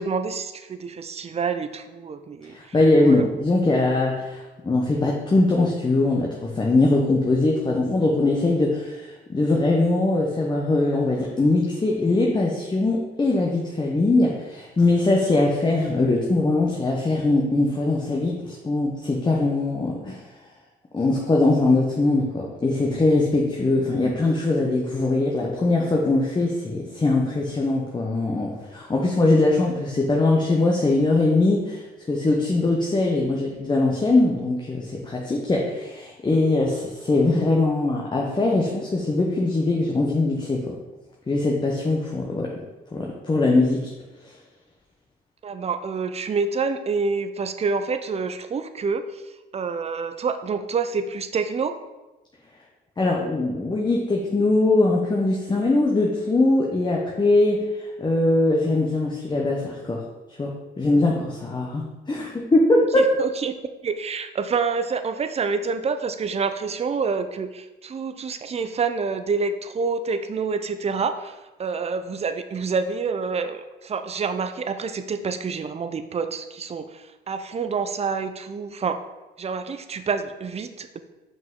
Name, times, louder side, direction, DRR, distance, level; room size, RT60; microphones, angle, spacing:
voice 1, 0.0-2.7 3.0-3.3 45.4-49.2 49.5-51.8 62.9-63.5 63.8-71.3 71.6-79.0 79.4-81.0, right 5 dB, 30° right, 9 dB, 0.5 m, -27 dB
voice 2, 2.5-20.2 20.9-31.8 32.1-40.7 41.3-42.5 42.9-43.9 44.2-44.3 53.0-60.0 60.4-63.1, left 2 dB, 20° left, -1 dB, 0.9 m, -21 dB
5.8 x 5.2 x 3.7 m, 1.1 s
cardioid pair, 90°, 20 cm